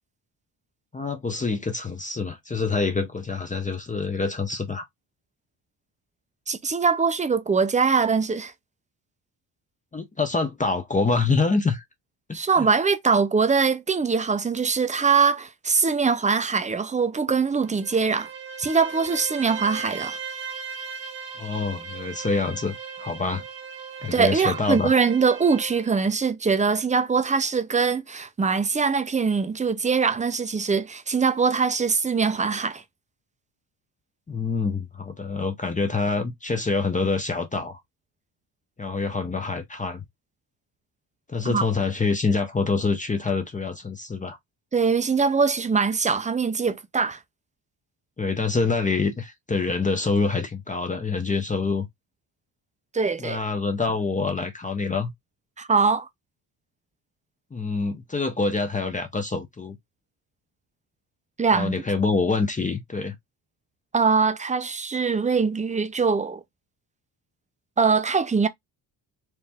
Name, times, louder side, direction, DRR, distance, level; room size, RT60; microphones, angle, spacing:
voice 1, 0.9-4.9 9.9-11.8 12.3-12.7 21.4-23.4 24.0-24.9 34.3-37.8 38.8-40.0 41.3-44.4 48.2-51.9 53.2-55.1 57.5-59.8 61.5-63.2, left 4 dB, 20° left, 0.7 m, -26 dB
voice 2, 6.5-8.5 12.3-18.3 18.6-20.2 24.1-32.8 41.4-41.6 44.7-47.2 52.9-53.4 55.6-56.1 61.4-61.7 63.9-66.4 67.8-68.5, right 5 dB, 15° right, 0.6 m, -22 dB
Bowed string instrument, 17.6-25.9, right 6 dB, 85° right, 1.6 m, -38 dB
4.5 x 2.7 x 3.4 m
cardioid pair, 130°, 43 cm